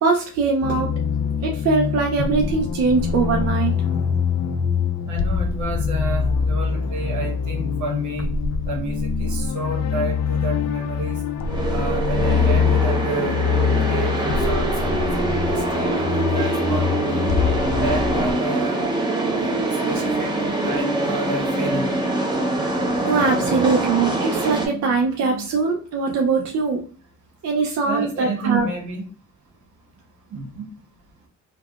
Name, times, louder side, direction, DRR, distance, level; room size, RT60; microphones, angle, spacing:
voice 1, 0.0-0.9 1.4-3.8 23.0-26.8 27.4-28.7, right 4 dB, 55° right, 2 dB, 0.5 m, -21 dB
sound 1, 0.6-18.3, left 6 dB, 65° left, 0.5 m, -23 dB
voice 2, 5.1-8.3 8.7-11.2 11.7-13.4 13.8-17.3 17.8-18.8 19.3-19.6 19.9-20.3 20.6-21.9 27.8-29.0 30.3-30.6, right 2 dB, 75° right, 2 dB, 1.1 m, -30 dB
sound 2, 11.4-24.7, right 2 dB, 15° right, 0.8 m, -24 dB
3.4 x 2.2 x 2.3 m, 0.40 s
cardioid pair, 90°, 30 cm